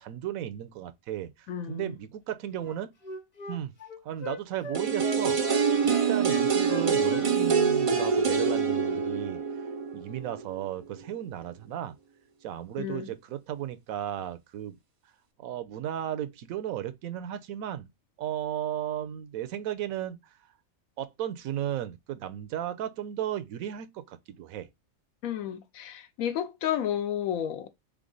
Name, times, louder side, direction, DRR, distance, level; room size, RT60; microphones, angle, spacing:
voice 1, 0.0-2.9 3.5-3.7 4.0-5.4 5.8-9.4 9.9-12.0 12.4-14.8 15.4-17.9 18.2-20.2 21.0-24.7, right 11 dB, 85° right, 1.0 m, -35 dB
voice 2, 1.5-2.0 6.8-7.0 12.8-13.1 25.2-27.7, left 10 dB, 85° left, 1.1 m, -32 dB
Wind instrument woodwind instrument, 2.6-7.3 7.5-8.6 8.8-9.0, left 3 dB, 35° left, 0.8 m, -40 dB
sound 1, 4.7-10.7 11.0-11.1, right 6 dB, 55° right, 0.3 m, -26 dB
3.7 x 3.4 x 3.8 m
omnidirectional pair, 1.4 m